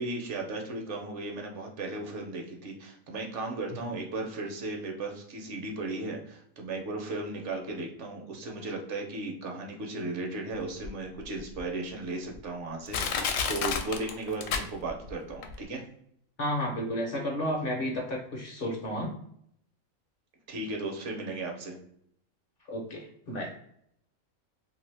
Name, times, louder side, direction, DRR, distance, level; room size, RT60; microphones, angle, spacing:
voice 1, 0.0-15.8 20.5-21.8, right 2 dB, 65° right, 1 dB, 0.9 m, -36 dB
Crushing, 10.8-10.9 11.6-11.7 12.3-12.4 12.9-15.1 15.4-15.5, left 6 dB, 75° left, 0.9 m, -30 dB
voice 2, 16.4-19.1 22.7-23.5, equal, 55° left, 0 dB, 0.7 m, -32 dB
2.8 x 2.6 x 3.2 m, 0.70 s
omnidirectional pair, 1.4 m